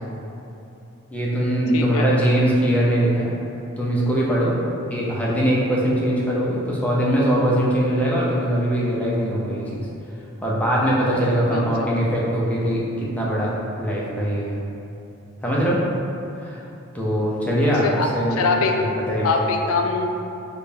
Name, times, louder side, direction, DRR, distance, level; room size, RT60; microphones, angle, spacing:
voice 1, 1.1-3.3 3.8-9.8 10.4-13.5 13.8-14.6 15.4-15.8 16.4-16.6 16.9-17.8 18.1-18.4 18.7-19.5, equal, 5° left, -6 dB, 0.5 m, -21 dB
voice 2, 1.7-2.1 11.5-11.9 17.8-18.8 19.2-20.2, left 4 dB, 75° left, 3 dB, 0.3 m, -23 dB
4.9 x 2.2 x 2.6 m, 2.8 s
head